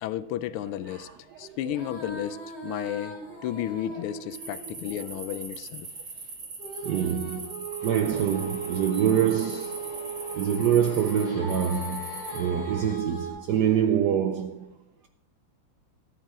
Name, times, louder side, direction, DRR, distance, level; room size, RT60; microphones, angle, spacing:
voice 1, 0.0-1.1 1.4-5.9, left 12 dB, 80° left, 1.5 m, -33 dB
voice 2, 0.9-1.8 3.9-4.0 6.8-7.5 7.8-9.8 10.3-12.1 12.3-14.6, right 9 dB, 75° right, 0.9 m, -26 dB
Female singing, 1.6-5.4 6.6-13.3, right 4 dB, 30° right, 4.9 m, -38 dB
sound 1, 4.3-12.4, right 3 dB, 55° right, 2.8 m, -40 dB
sound 2, 7.8-13.0, left 3 dB, 60° left, 2.0 m, -46 dB
13.5 x 9.3 x 3.6 m
omnidirectional pair, 2.4 m